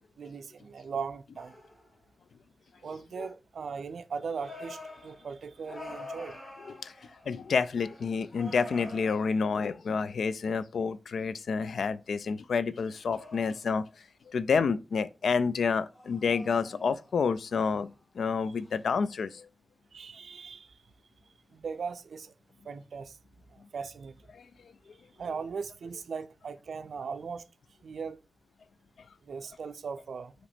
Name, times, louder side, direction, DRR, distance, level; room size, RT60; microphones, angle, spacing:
voice 1, 0.2-1.5 2.8-6.4 18.5-18.6 19.9-20.8 21.5-22.3 22.7-23.2 23.7-24.1 25.2-27.4 27.8-28.2 29.2-30.3, right 5 dB, 75° right, 0.4 m, -38 dB
sound 1, 1.4-2.0 4.4-7.5 7.8-9.6 12.7-13.8 15.9-17.2 17.5-17.9 18.6-18.8, left 1 dB, 30° left, 2.5 m, -47 dB
voice 2, 7.3-13.8 14.3-17.9 18.2-19.4, left 5 dB, 80° left, 0.3 m, -29 dB
4.8 x 3.0 x 3.3 m
wide cardioid pair, 175°, 0 cm